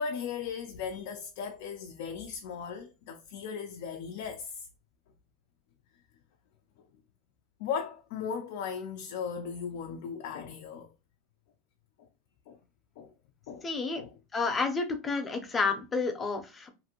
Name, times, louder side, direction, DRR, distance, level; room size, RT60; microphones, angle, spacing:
voice 1, 0.0-4.5 7.6-10.9 12.5-12.6 13.0-13.1 13.5-13.7 13.9-14.1 14.5-14.6, left 6 dB, 70° left, 0.3 m, -37 dB
voice 2, 13.6-14.0 14.3-16.7, left 4 dB, 15° left, 0.5 m, -30 dB
2.5 x 2.5 x 2.8 m
supercardioid pair, 135°, 0 cm